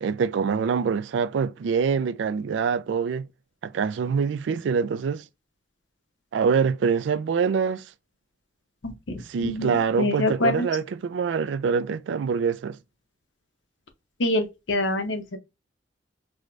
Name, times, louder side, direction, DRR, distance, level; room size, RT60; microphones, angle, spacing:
voice 1, 0.0-3.3 3.6-5.2 6.3-7.9 9.3-12.8, right 6 dB, 75° right, 0.3 m, -25 dB
voice 2, 8.8-10.7 14.2-15.4, left 2 dB, 85° left, 0.8 m, -26 dB
4.7 x 2.1 x 2.5 m
head